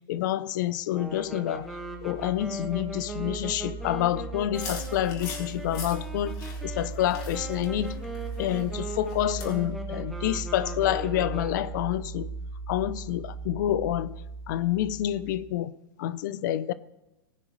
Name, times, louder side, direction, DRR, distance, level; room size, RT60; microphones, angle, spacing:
voice 1, 0.1-1.7 2.0-7.9 8.4-12.3 12.7-14.2 14.5-15.7 16.0-16.7, left 12 dB, 55° left, 0.7 m, -28 dB
sound 1, 0.9-11.9, right 2 dB, ahead, 1.8 m, -39 dB
sound 2, 1.1-15.6, right 4 dB, 65° right, 3.8 m, -38 dB
sound 3, 4.5-9.6, left 4 dB, 35° left, 3.8 m, -43 dB
20.5 x 9.6 x 3.2 m
hypercardioid pair, 110°, 12 cm